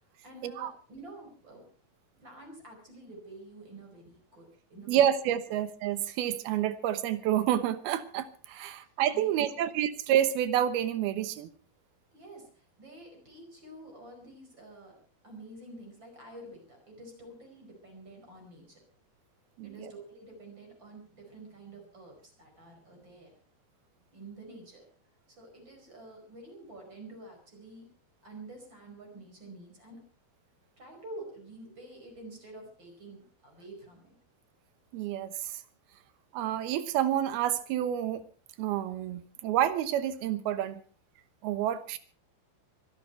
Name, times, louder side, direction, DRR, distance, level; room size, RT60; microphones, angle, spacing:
voice 1, 0.2-1.7 2.1-5.1 5.5-5.6 8.7-9.7 12.1-15.0 15.2-18.8 19.6-23.3 24.1-24.9 25.4-27.9 28.2-30.0 30.8-34.1, right 2 dB, 30° right, 2 dB, 5.6 m, -49 dB
voice 2, 4.9-11.5 19.6-19.9 34.9-35.6 36.3-38.2 38.6-40.8 41.4-42.0, right 11 dB, 85° right, 13 dB, 3.0 m, -29 dB
24.0 x 11.5 x 4.5 m, 0.41 s
omnidirectional pair, 4.3 m